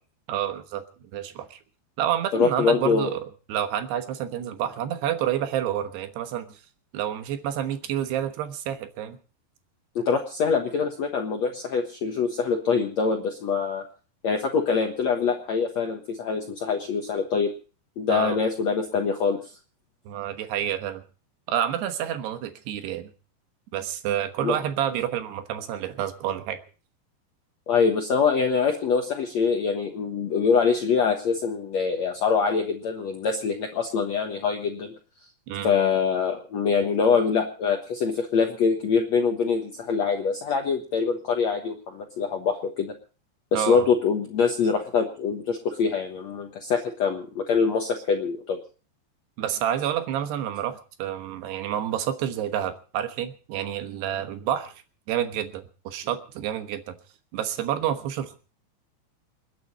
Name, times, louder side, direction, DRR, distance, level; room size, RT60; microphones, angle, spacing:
voice 1, 0.3-0.8 1.1-1.6 2.0-3.2 3.5-6.6 6.9-9.2 18.1-18.4 20.1-21.0 21.5-23.1 23.7-26.6 35.5-35.7 43.5-43.9 49.4-54.8 55.1-57.0 57.3-58.4, right 10 dB, 75° right, 8 dB, 3.2 m, -29 dB
voice 2, 2.3-3.1 9.9-13.8 14.2-17.5 18.0-19.5 24.4-24.6 27.7-34.9 35.6-42.9 43.5-48.6, left 5 dB, 65° left, 3 dB, 1.7 m, -24 dB
28.5 x 9.6 x 4.2 m, 0.38 s
omnidirectional pair, 5.0 m